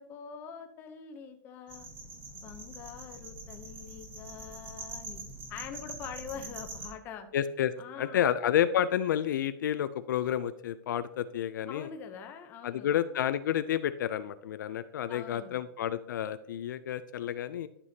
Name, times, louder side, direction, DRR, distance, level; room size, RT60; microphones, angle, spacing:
voice 1, 0.0-1.9 2.3-5.2 5.5-7.3 7.8-8.2 11.7-12.9 15.1-15.6, left 7 dB, 15° left, 6 dB, 0.7 m, -44 dB
sound 1, 1.7-6.9, right 2 dB, 20° right, 1.3 m, -44 dB
voice 2, 7.3-11.9 12.6-17.7, left 10 dB, 60° left, 13 dB, 0.4 m, -30 dB
12.5 x 6.8 x 2.8 m, 0.79 s
supercardioid pair, 175°, 12 cm